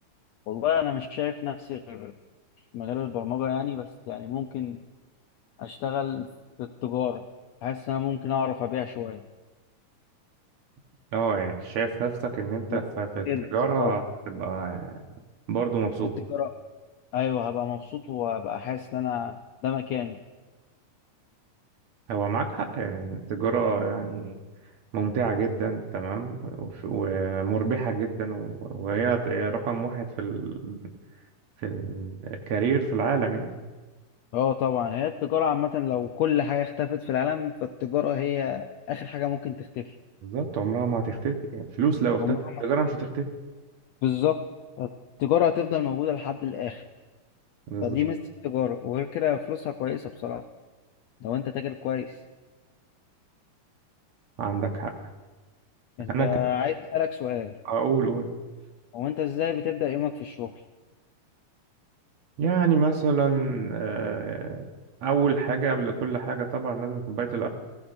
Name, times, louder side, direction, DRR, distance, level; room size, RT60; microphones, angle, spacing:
voice 1, 0.5-2.1 2.7-4.8 5.6-6.3 6.6-7.2 7.6-9.2 12.7-12.8 13.3-13.5 13.8-14.0 16.3-16.5 17.1-20.2 34.3-39.9 42.2-42.4 44.0-44.4 44.8-44.9 45.2-46.8 47.8-48.2 48.4-50.4 51.2-52.1 56.0-57.5 58.9-60.5, left 10 dB, 90° left, 6 dB, 1.5 m, -28 dB
voice 2, 11.1-14.9 15.5-16.2 22.1-24.4 24.9-30.8 31.6-33.6 40.2-43.3 47.7-48.0 54.4-54.9 56.1-56.3 57.7-58.3 62.4-64.7 65.0-67.5, right 5 dB, 65° right, 3 dB, 2.2 m, -27 dB
30.0 x 17.0 x 2.6 m, 1.3 s
omnidirectional pair, 3.8 m